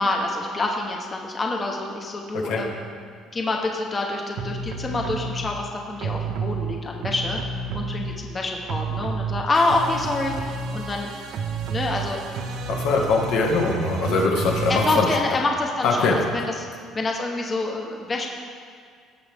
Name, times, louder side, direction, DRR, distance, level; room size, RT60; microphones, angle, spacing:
voice 1, 0.0-2.8 3.3-7.4 7.7-11.1 11.7-12.2 14.7-16.7 16.9-18.3, left 2 dB, 25° left, 0 dB, 1.0 m, -26 dB
voice 2, 2.3-2.6 12.7-15.1 15.8-16.2, left 3 dB, 75° left, 0 dB, 1.6 m, -22 dB
sound 1, 4.4-5.5 6.0-8.4 8.6-15.0, right 4 dB, 70° right, 0.8 m, -30 dB
17.5 x 6.3 x 3.5 m, 2.1 s
cardioid pair, 135°, 0 cm